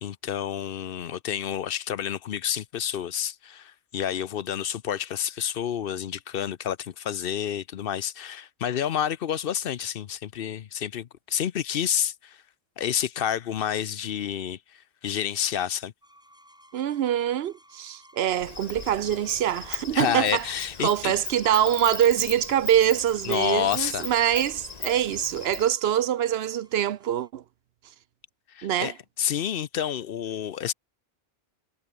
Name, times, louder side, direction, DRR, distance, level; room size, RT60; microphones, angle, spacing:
voice 1, 0.0-12.4 12.8-15.9 19.9-21.1 23.3-24.1 28.5-30.7, left 9 dB, 65° left, 0.8 m, -29 dB
sound 1, 16.0-27.3, equal, 5° right, 5.5 m, -58 dB
voice 2, 16.7-20.5 20.8-27.4 28.6-28.9, right 10 dB, 75° right, 0.9 m, -24 dB
Insect, 18.3-25.7, left 5 dB, 40° left, 1.3 m, -38 dB
omnidirectional pair, 1.1 m